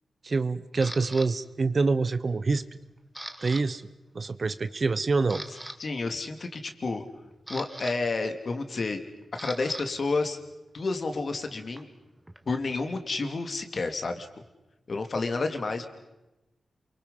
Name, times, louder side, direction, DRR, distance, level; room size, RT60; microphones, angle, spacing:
voice 1, 0.2-2.6 3.4-3.8 4.1-5.4, right 4 dB, 45° right, 14 dB, 0.9 m, -26 dB
Camera, 0.8-1.3 1.9-2.2 2.5-3.6 3.9-4.1 4.6-4.7 5.1-5.8 7.0-9.8 10.1-12.7, right 1 dB, 10° right, 1.7 m, -42 dB
voice 2, 5.8-7.0 7.5-9.0 9.3-10.4 10.7-11.9 12.5-14.3 14.9-15.9, left 3 dB, 55° left, 6 dB, 2.5 m, -30 dB
28.0 x 24.0 x 5.6 m, 0.98 s
wide cardioid pair, 85°, 0 cm